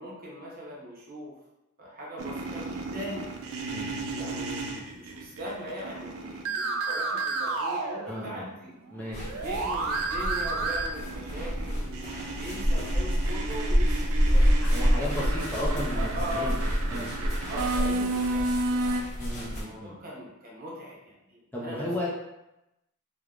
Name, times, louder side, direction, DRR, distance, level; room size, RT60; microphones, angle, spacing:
voice 1, 0.0-1.3 1.8-3.4 4.1-8.7 9.3-12.0 12.3-16.5 17.5-21.9, equal, 45° right, -4 dB, 0.8 m, -40 dB
sound 1, 2.2-8.5 8.8-19.0, right 3 dB, 70° right, 0.3 m, -33 dB
voice 2, 8.1-8.5 8.9-9.3 14.6-16.6 16.9-17.1 19.2-20.0 21.5-22.1, left 1 dB, 10° left, -6 dB, 0.4 m, -34 dB
sound 2, 9.1-19.6, equal, 40° left, 0.9 m, -28 dB
3.2 x 2.2 x 2.4 m, 0.90 s
head